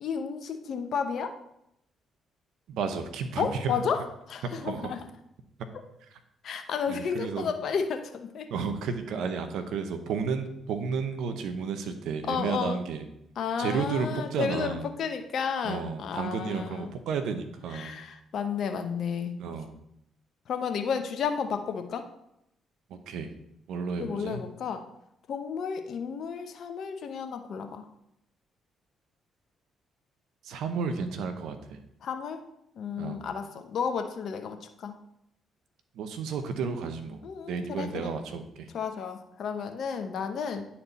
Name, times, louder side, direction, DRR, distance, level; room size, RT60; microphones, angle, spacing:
voice 1, 0.0-1.4 3.4-5.0 5.7-5.8 6.4-8.5 12.3-12.8 13.4-16.9 17.7-19.4 20.5-22.1 24.0-24.9 25.3-27.9 32.0-32.5 32.8-35.0 37.2-38.1 38.7-40.6, left 6 dB, 65° left, 7 dB, 0.8 m, -32 dB
voice 2, 2.7-3.8 4.6-5.0 6.9-7.5 8.5-13.1 13.6-14.9 15.6-18.0 19.4-19.8 22.9-23.3 23.7-24.4 30.4-31.8 33.0-33.2 35.9-37.2 37.5-38.7, right 5 dB, 75° right, 8 dB, 0.8 m, -32 dB
9.7 x 4.3 x 4.1 m, 0.78 s
hypercardioid pair, 50°, 0 cm